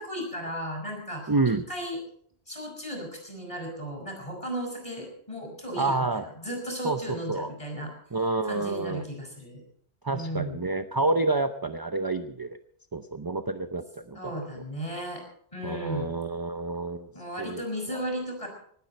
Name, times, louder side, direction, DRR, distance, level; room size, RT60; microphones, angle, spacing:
voice 1, 0.0-1.3 1.7-2.0 2.5-7.9 8.4-9.6 10.1-10.6 14.1-15.2 15.5-16.1 17.1-18.5, equal, 30° left, 2 dB, 6.1 m, -35 dB
voice 2, 1.3-1.6 5.8-6.3 6.8-7.5 8.1-9.0 10.0-12.6 12.9-14.5 15.6-17.1 17.4-17.6 17.9-18.0, right 3 dB, 25° right, 9 dB, 0.6 m, -28 dB
19.0 x 15.5 x 4.4 m, 0.63 s
omnidirectional pair, 1.0 m